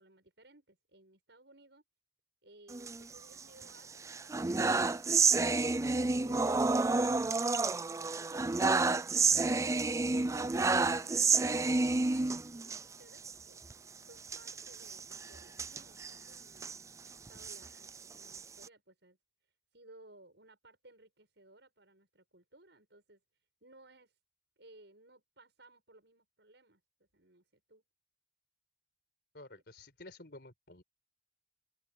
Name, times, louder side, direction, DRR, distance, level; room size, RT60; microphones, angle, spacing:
voice 1, 0.0-1.8 2.4-4.8 9.2-13.6 14.0-16.7 17.0-19.2 19.4-23.2 23.6-24.2 24.6-27.8, right 2 dB, 70° right, 7.7 m, -60 dB
sound 1, 2.7-3.6 4.0-12.8 13.2-13.3 13.6-13.7 14.2-16.8 17.3-18.7, right 3 dB, 15° right, 0.4 m, -30 dB
voice 2, 29.3-30.8, left 2 dB, 60° left, 4.9 m, -52 dB
open air
head